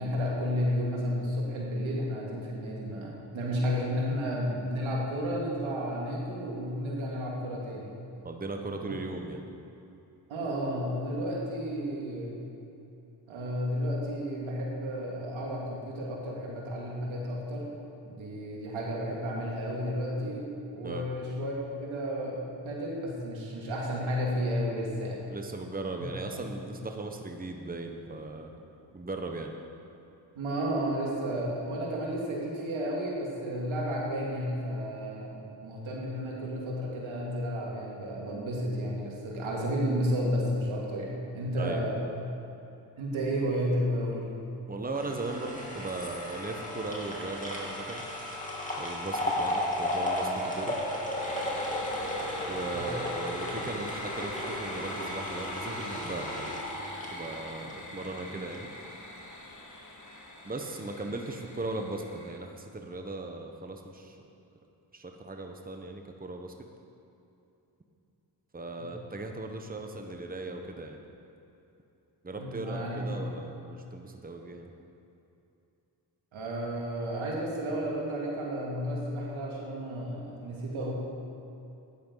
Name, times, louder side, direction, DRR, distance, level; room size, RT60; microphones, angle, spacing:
voice 1, 0.0-8.0 8.8-9.0 10.3-12.4 13.3-17.7 18.1-21.5 21.8-25.2 26.3-26.4 30.3-41.9 43.0-44.3 52.7-52.9 68.8-68.9 72.4-73.2 76.3-80.9, equal, 90° right, -3 dB, 2.4 m, -32 dB
voice 2, 8.2-9.4 20.8-21.1 25.3-28.5 28.9-29.5 41.6-42.1 44.7-48.0 48.8-50.8 52.5-56.6 57.1-58.7 60.4-64.2 64.9-66.5 68.5-71.0 72.2-74.7, right 2 dB, 20° right, 3 dB, 1.2 m, -38 dB
sound 1, 45.0-58.2 58.5-58.6, left 1 dB, 15° left, 2.9 m, -34 dB
sound 2, 51.2-62.4, left 1 dB, 40° left, 1.9 m, -43 dB
13.5 x 10.0 x 4.0 m, 2.8 s
cardioid pair, 50°, 46 cm